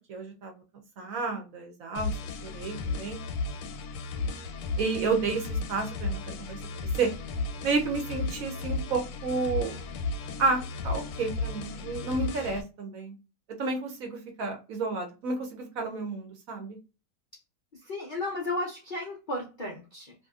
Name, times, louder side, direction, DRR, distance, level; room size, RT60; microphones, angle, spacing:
voice 1, 0.1-0.5 1.0-2.1 2.4-3.2 4.8-7.1 7.6-9.8 10.4-13.2 13.6-16.8, right 4 dB, 65° right, 3 dB, 0.9 m, -31 dB
sound 1, 2.0-12.6, left 3 dB, 90° left, 1.2 m, -34 dB
voice 2, 17.7-20.1, left 2 dB, 70° left, -2 dB, 0.4 m, -34 dB
2.9 x 2.6 x 2.3 m, 0.30 s
omnidirectional pair, 1.8 m